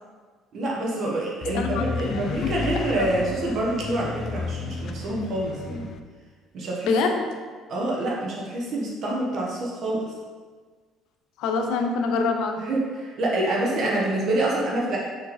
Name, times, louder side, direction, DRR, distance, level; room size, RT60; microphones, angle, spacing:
voice 1, 0.5-5.9 6.5-6.9 7.7-10.0 12.6-15.0, right 1 dB, 50° right, -4 dB, 1.2 m, -26 dB
sound 1, 1.4-6.0, left 4 dB, 45° left, 0.4 m, -33 dB
voice 2, 1.5-2.5 2.9-3.1 6.8-7.2 11.4-12.7 13.7-13.9, left 4 dB, 75° left, 4 dB, 0.8 m, -26 dB
5.9 x 4.3 x 4.2 m, 1.5 s
cardioid pair, 125°, 0 cm